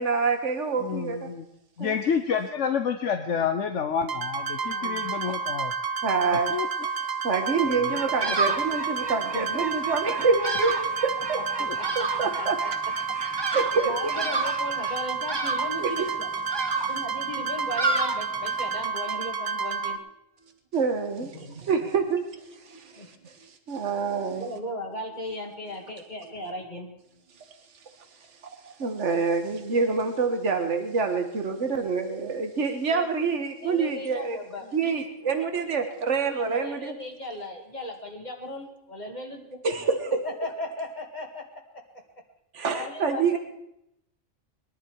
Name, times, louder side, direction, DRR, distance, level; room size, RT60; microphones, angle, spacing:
voice 1, 0.0-1.3 1.8-2.0 6.0-6.6 7.2-11.4 12.0-12.6 13.1-14.1 15.8-16.1 16.8-16.9 20.7-24.5 28.4-34.4 34.7-37.0 39.6-40.3 42.5-43.4, right 4 dB, 70° right, 6 dB, 1.8 m, -27 dB
voice 2, 0.8-1.4 1.8-5.7 6.5-6.7 7.7-7.9 11.6-11.8, left 7 dB, 75° left, 7 dB, 1.2 m, -28 dB
sound 1, 4.1-20.0, right 5 dB, 55° right, 1.1 m, -30 dB
voice 3, 4.7-5.1 11.6-12.5 13.1-13.2 13.9-16.3 16.9-20.0 20.4-20.5 21.5-21.7 22.7-23.1 23.4-23.5 24.4-26.9 32.9-33.1 33.6-34.7 36.3-39.7 40.2-41.4 42.7-43.4, left 1 dB, 35° left, 1 dB, 2.2 m, -37 dB
Bird vocalization bird call bird song, 7.9-18.9, right 3 dB, 25° right, 0.8 m, -32 dB
21.5 x 11.5 x 4.7 m, 0.82 s
omnidirectional pair, 1.3 m